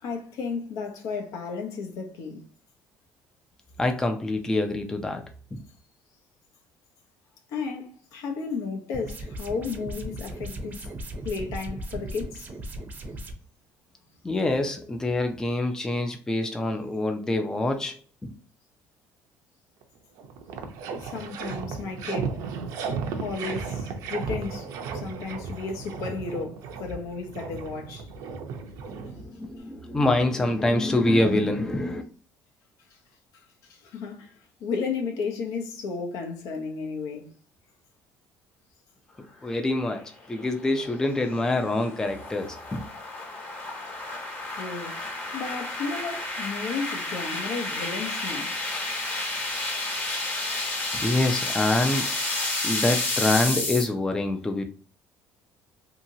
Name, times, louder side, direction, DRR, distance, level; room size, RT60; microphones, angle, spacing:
voice 1, 0.0-2.4 7.5-10.9 11.2-12.5 21.0-22.4 23.2-28.1 33.3-37.3 44.5-48.6, left 4 dB, 70° left, 0.7 m, -33 dB
voice 2, 3.8-5.2 5.5-5.6 14.2-18.0 18.2-18.3 28.9-32.0 39.4-42.9 51.0-52.1 52.6-54.6, left 2 dB, 10° left, 0.4 m, -25 dB
sound 1, 8.9-13.3, right 1 dB, 30° right, 0.6 m, -37 dB
sound 2, 19.8-19.9 20.2-29.6, right 5 dB, 70° right, 0.5 m, -35 dB
sound 3, 39.9-53.8, left 2 dB, 30° left, 1.1 m, -31 dB
2.8 x 2.8 x 2.6 m
cardioid pair, 130°, 6 cm